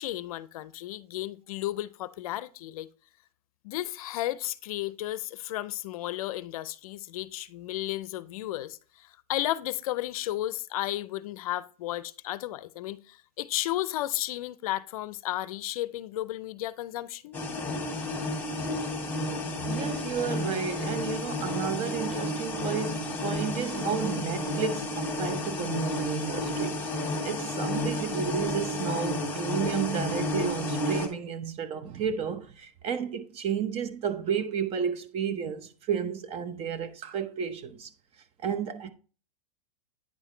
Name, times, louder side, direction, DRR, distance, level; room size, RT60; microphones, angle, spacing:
voice 1, 0.0-2.9 3.6-17.4, left 15 dB, 65° left, 0.5 m, -33 dB
sound 1, 17.3-31.1, left 1 dB, 10° left, 1.7 m, -31 dB
voice 2, 19.6-37.9 38.4-38.9, right 7 dB, 30° right, 0.8 m, -32 dB
9.4 x 4.9 x 3.2 m
hypercardioid pair, 130°, 20 cm